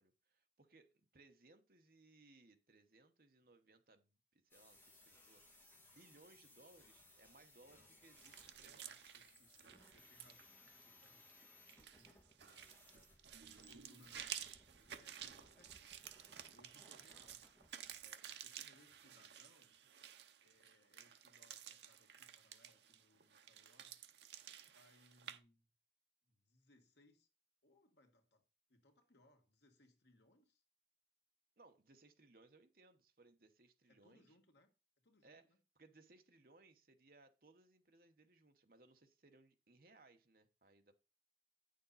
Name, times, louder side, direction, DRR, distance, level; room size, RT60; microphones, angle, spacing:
voice 1, 0.0-8.9 31.6-34.4 35.2-35.5 35.8-40.9, right 2 dB, 50° right, 1.1 m, -67 dB
sound 1, 4.5-18.1, left 2 dB, 10° left, 2.2 m, -66 dB
voice 2, 7.7-8.0 8.6-13.1 13.5-14.4 14.8-17.4 18.0-19.8 20.4-24.0 24.7-25.7 26.2-27.3 27.6-28.4 28.7-30.6 33.9-34.7 35.0-35.6, left 1 dB, 75° left, 1.8 m, -71 dB
sound 2, 8.2-25.4, right 9 dB, 75° right, 0.8 m, -54 dB
9.0 x 6.6 x 4.1 m
head